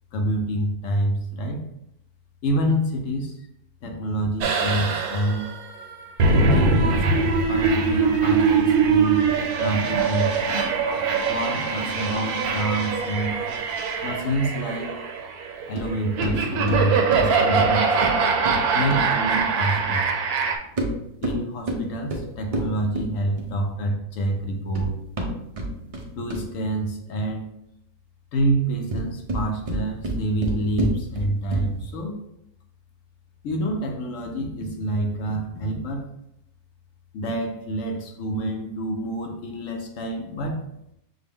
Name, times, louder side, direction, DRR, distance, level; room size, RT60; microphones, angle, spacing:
voice 1, 0.1-1.6 2.4-3.5 3.8-5.5 6.5-9.2 9.6-10.4 11.3-13.4 14.0-15.0 15.7-18.0 18.6-20.1 21.2-25.0 26.1-27.5 28.3-32.2 33.4-36.1 37.1-40.6, right 1 dB, 65° left, 2 dB, 1.0 m, -27 dB
sound 1, 4.4-20.6, right 4 dB, 80° right, 1.1 m, -22 dB
sound 2, 15.8-19.9 20.6-23.7 24.4-26.7 28.7-31.9, right 1 dB, 55° right, 0.4 m, -30 dB
6.0 x 2.2 x 3.5 m, 0.79 s
omnidirectional pair, 1.6 m